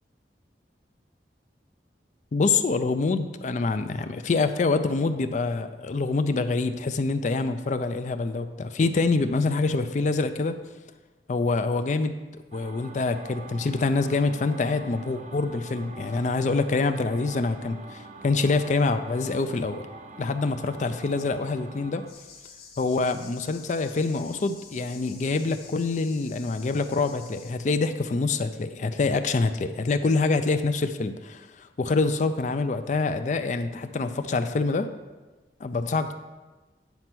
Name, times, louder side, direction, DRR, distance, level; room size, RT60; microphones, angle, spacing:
voice 1, 2.3-10.6 11.3-12.2 12.5-19.8 20.2-22.0 22.8-34.9 35.6-36.1, left 3 dB, 45° left, 9 dB, 0.4 m, -26 dB
sound 1, 12.5-22.1, right 3 dB, 40° right, 0.5 m, -45 dB
sound 2, 22.1-27.5, left 5 dB, 60° left, 1.2 m, -48 dB
9.4 x 4.4 x 6.0 m, 1.2 s
head